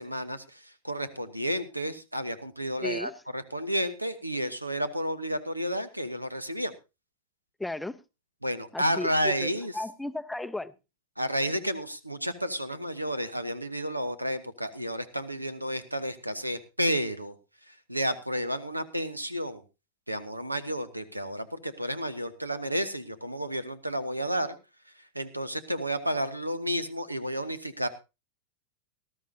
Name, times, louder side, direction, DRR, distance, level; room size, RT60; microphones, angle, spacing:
voice 1, 0.0-6.7 8.4-9.7 11.2-17.3 17.7-19.6 20.1-24.6 25.1-27.9, equal, 85° right, 1.1 m, -31 dB
voice 2, 2.8-3.1 7.6-8.0 8.7-9.5 9.7-10.7, left 2 dB, 5° left, 0.6 m, -34 dB
19.0 x 13.0 x 2.7 m
figure-of-eight pair, 90°, 0 cm